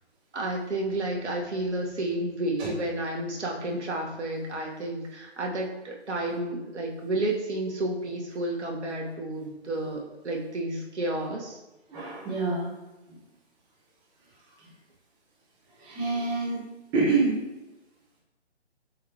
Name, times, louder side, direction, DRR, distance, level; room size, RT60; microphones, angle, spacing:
voice 1, 0.3-11.6, right 1 dB, 80° right, -1 dB, 1.9 m, -31 dB
voice 2, 11.9-12.7 15.8-16.6 16.9-17.4, right 3 dB, 10° right, -6 dB, 1.3 m, -26 dB
8.5 x 4.2 x 3.1 m, 1.0 s
figure-of-eight pair, 150°, 34 cm